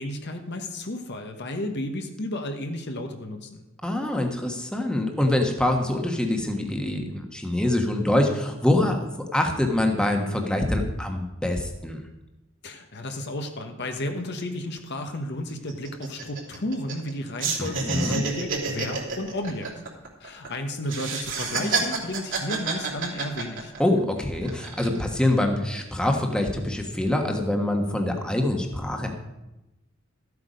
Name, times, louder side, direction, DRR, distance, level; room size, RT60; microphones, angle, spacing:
voice 1, 0.0-3.6 12.6-19.7 20.2-23.7, left 1 dB, 55° left, 5 dB, 1.2 m, -32 dB
voice 2, 3.8-9.0 9.3-12.0 17.6-18.2 23.8-29.2, left 1 dB, 5° left, 3 dB, 1.3 m, -25 dB
sound 1, 14.6-14.7 15.0-15.2 15.5-17.1 17.4-20.5 20.9-24.0 24.4-25.0, right 4 dB, 65° right, 3.0 m, -29 dB
13.0 x 8.2 x 5.2 m, 0.97 s
head